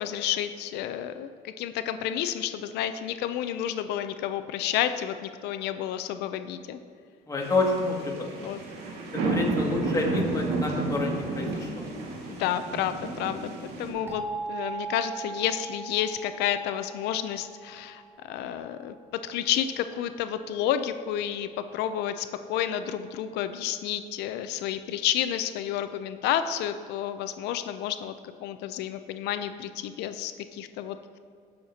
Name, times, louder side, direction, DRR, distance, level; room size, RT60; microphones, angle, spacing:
voice 1, 0.0-6.8 8.3-8.6 12.3-13.5 13.8-28.1 28.4-31.2, left 10 dB, 85° left, 10 dB, 0.5 m, -30 dB
voice 2, 7.3-8.1 8.4-8.5 9.1-11.9, left 3 dB, 20° left, -2 dB, 2.1 m, -28 dB
sound 1, 7.4-13.9, right 2 dB, 75° right, 1.9 m, -31 dB
sound 2, 14.1-18.8, right 4 dB, 15° right, 2.0 m, -39 dB
17.5 x 6.5 x 2.8 m, 2.3 s
cardioid pair, 110°, 17 cm